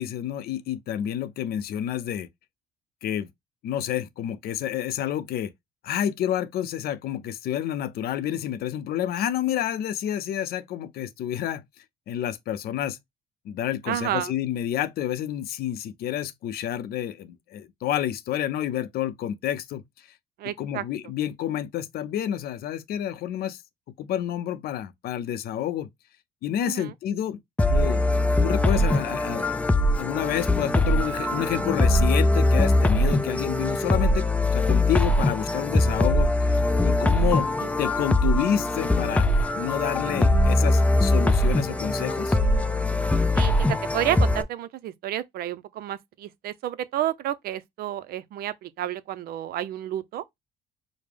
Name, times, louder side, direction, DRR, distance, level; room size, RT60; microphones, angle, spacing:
voice 1, 0.0-2.3 3.0-3.3 3.6-5.5 5.8-11.6 12.1-13.0 13.5-19.8 20.6-23.6 24.0-25.9 26.4-27.4 27.7-28.0 28.4-29.6 29.9-34.3 34.5-36.6 36.8-37.5 37.8-39.3 39.6-42.4, left 11 dB, 65° left, 0.6 m, -29 dB
voice 2, 13.9-14.3 20.4-20.8 26.6-26.9 37.6-37.7 43.3-50.2, right 12 dB, 65° right, 0.5 m, -30 dB
sound 1, 27.6-44.4, left 1 dB, 10° left, 0.4 m, -22 dB
4.9 x 2.1 x 3.4 m
cardioid pair, 110°, 17 cm